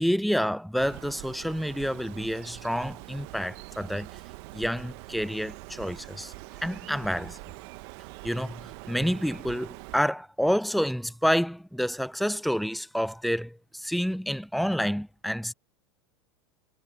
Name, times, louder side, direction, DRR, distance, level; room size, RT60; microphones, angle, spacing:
voice 1, 0.0-4.1 4.5-6.3 6.6-7.4 8.2-15.5, equal, ahead, 0.6 m, -28 dB
Bird, 0.8-10.0, right 24 dB, 60° right, 1.4 m, -44 dB
hypercardioid pair, 105°, 15 cm